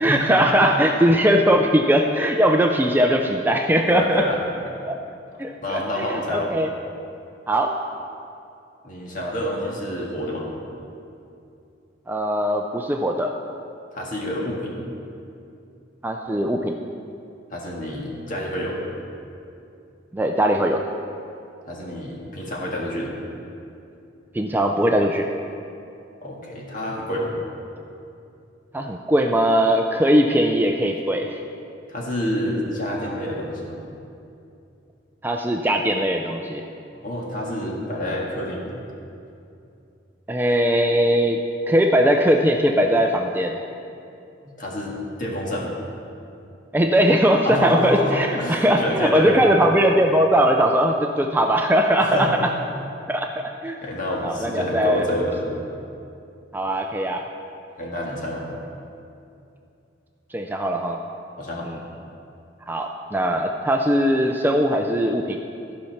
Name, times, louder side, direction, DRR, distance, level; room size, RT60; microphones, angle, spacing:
voice 1, 0.0-4.2 4.8-5.0 5.4-6.7 7.5-7.8 12.1-13.4 16.0-16.7 20.1-20.9 24.3-25.3 28.7-31.4 35.2-36.6 40.3-43.6 46.7-52.3 53.1-53.8 54.2-55.0 56.5-57.3 60.3-61.0 61.6-61.8 62.7-65.4, equal, 10° right, 3 dB, 0.4 m, -20 dB
voice 2, 3.9-4.4 5.6-6.5 8.8-10.4 13.9-14.7 17.5-18.8 21.7-23.1 26.2-27.3 31.9-33.8 37.0-38.6 44.5-44.9 45.2-45.8 47.4-49.4 52.0-52.3 53.8-55.5 57.8-58.4 61.4-61.7, left 1 dB, 45° left, -3 dB, 1.8 m, -27 dB
13.5 x 5.6 x 5.8 m, 2.6 s
head